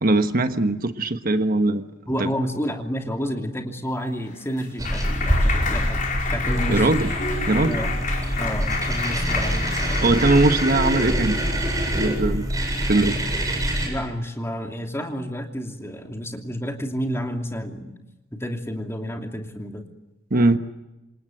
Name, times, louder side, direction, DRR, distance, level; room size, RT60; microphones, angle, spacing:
voice 1, 0.0-1.8 2.2-2.3 6.7-7.1 7.5-7.8 10.0-11.4 11.9-12.5 12.8-13.2 20.3-20.6, right 2 dB, 45° right, 8 dB, 1.3 m, -20 dB
voice 2, 2.1-6.0 6.3-6.9 7.7-7.9 8.4-9.9 13.8-17.9 18.3-19.8, equal, 15° left, 3 dB, 2.9 m, -30 dB
Clapping, 4.0-11.3, left 4 dB, 40° left, 4.7 m, -30 dB
sound 1, 4.8-13.9, equal, 20° right, 7.9 m, -25 dB
27.5 x 26.5 x 8.0 m, 1.0 s
head